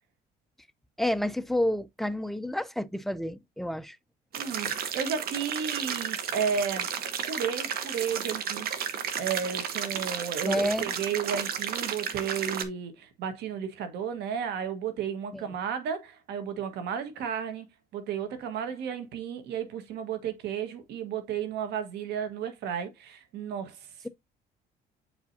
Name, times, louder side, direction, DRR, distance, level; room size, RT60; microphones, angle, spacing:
voice 1, 1.0-4.0 10.4-10.9 15.3-15.4, left 1 dB, ahead, 0.4 m, -29 dB
sound 1, 4.3-12.6, right 8 dB, 65° right, 1.1 m, -33 dB
voice 2, 4.3-6.9 7.3-8.7 9.1-17.7 17.9-24.1, right 7 dB, 80° right, 1.5 m, -33 dB
7.9 x 4.9 x 2.7 m
cardioid pair, 110°, 17 cm